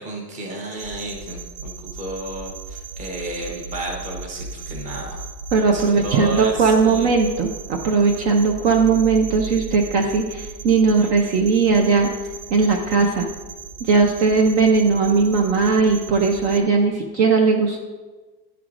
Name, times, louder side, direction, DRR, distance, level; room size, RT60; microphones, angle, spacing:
voice 1, 0.0-5.2 5.7-7.1, right 2 dB, 15° right, 0 dB, 0.9 m, -32 dB
sound 1, 0.8-16.6, right 5 dB, 85° right, 0.8 m, -36 dB
voice 2, 5.5-12.1 12.5-13.3 13.8-17.8, right 4 dB, 45° right, 2 dB, 0.6 m, -18 dB
11.0 x 4.6 x 2.5 m, 1.3 s
supercardioid pair, 165°, 49 cm